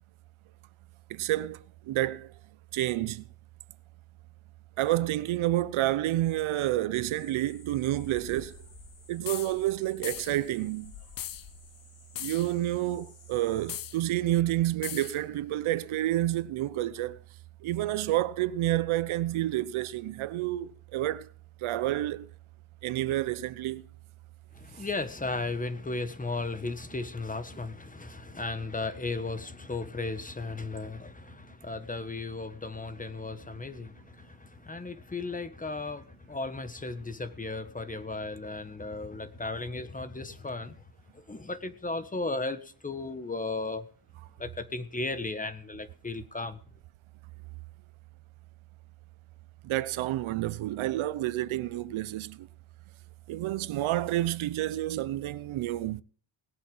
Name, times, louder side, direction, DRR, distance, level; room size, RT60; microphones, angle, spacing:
voice 1, 1.1-2.3 2.7-3.3 4.8-8.6 9.1-10.9 12.2-17.2 17.6-21.3 21.6-22.3 22.8-23.8 49.6-52.5 53.3-56.0, right 15 dB, 80° right, 0.9 m, -29 dB
sound 1, 7.0-13.8, left 6 dB, 65° left, 5.1 m, -53 dB
sound 2, 9.3-9.5 10.0-10.4 11.2-11.5 12.2-12.5 13.7-14.0 14.8-15.2, left 11 dB, 45° left, 0.7 m, -38 dB
voice 2, 24.5-40.7 41.1-43.9 44.4-46.6, left 3 dB, 15° left, 1.3 m, -35 dB
19.0 x 8.5 x 5.5 m
cardioid pair, 120°, 48 cm